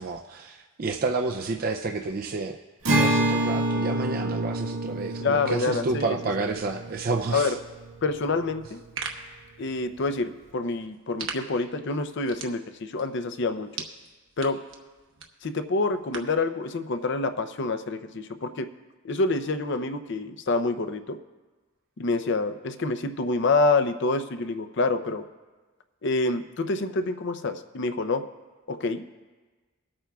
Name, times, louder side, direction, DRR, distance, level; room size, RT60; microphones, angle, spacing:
voice 1, 0.0-2.6 2.9-7.6, right 3 dB, 45° right, 3 dB, 0.4 m, -30 dB
Acoustic guitar, 2.8-8.3, right 1 dB, 80° right, 1.7 m, -28 dB
voice 2, 5.2-6.2 7.3-7.5 8.0-8.8 9.6-13.7 14.4-14.6 15.4-18.7 19.0-21.2 22.0-25.2 26.0-28.2 28.7-29.0, left 3 dB, 55° left, 9 dB, 0.6 m, -27 dB
sound 1, 8.6-16.4, right 5 dB, 65° right, 1.1 m, -42 dB
24.5 x 8.7 x 2.3 m, 1.3 s
head